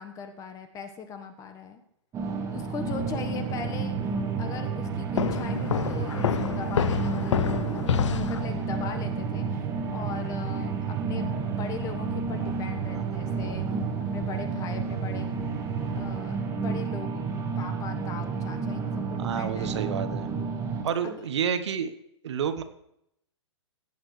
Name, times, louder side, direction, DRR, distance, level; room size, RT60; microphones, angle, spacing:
voice 1, 0.0-1.8 2.5-4.0 4.4-7.4 7.9-9.6 9.9-13.7 14.1-15.3 15.9-17.2 17.6-20.0 21.0-21.3, left 6 dB, 20° left, 7 dB, 1.2 m, -39 dB
sound 1, 2.1-20.8, right 4 dB, 20° right, 1.6 m, -31 dB
sound 2, 2.8-16.2, right 9 dB, 50° right, 0.6 m, -36 dB
sound 3, 5.2-8.9, left 8 dB, 75° left, 0.6 m, -28 dB
voice 2, 19.2-20.3 20.8-21.9 22.2-22.6, right 8 dB, 65° right, 9 dB, 1.1 m, -29 dB
17.5 x 8.7 x 3.3 m, 0.77 s
hypercardioid pair, 135°, 16 cm